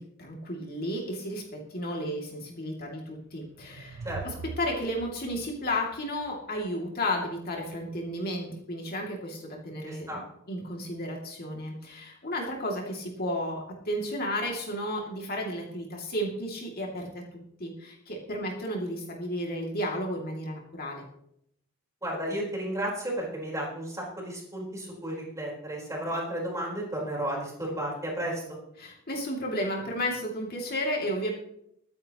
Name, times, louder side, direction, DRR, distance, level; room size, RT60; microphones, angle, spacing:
voice 1, 0.0-10.2 10.5-21.0 28.8-31.3, equal, 45° left, -1 dB, 2.5 m, -33 dB
sound 1, 3.2-6.7, right 4 dB, 85° right, 0.6 m, -43 dB
voice 2, 9.9-10.2 22.0-28.4, right 1 dB, 15° right, -2 dB, 4.2 m, -33 dB
22.5 x 9.5 x 3.0 m, 0.74 s
head